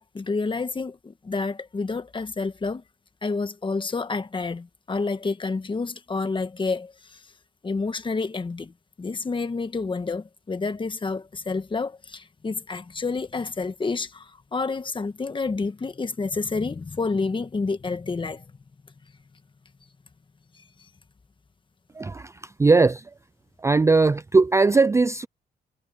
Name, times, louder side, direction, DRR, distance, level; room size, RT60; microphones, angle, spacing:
voice 1, 0.0-2.8 3.2-6.9 7.6-8.7 9.0-18.4, left 4 dB, 30° left, 1.5 m, -29 dB
voice 2, 21.9-23.1 23.6-25.3, right 3 dB, 15° right, 0.4 m, -19 dB
cardioid pair, 90°, 18 cm